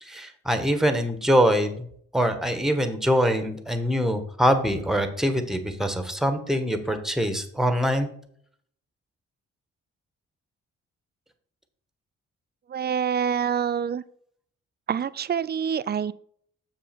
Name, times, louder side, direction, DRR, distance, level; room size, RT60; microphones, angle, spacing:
voice 1, 0.0-1.7 2.1-8.1, equal, ahead, 8 dB, 1.3 m, -23 dB
voice 2, 12.7-14.0 14.9-16.1, right 8 dB, 30° right, 18 dB, 0.4 m, -26 dB
6.9 x 5.7 x 4.4 m, 0.64 s
hypercardioid pair, 40°, 32 cm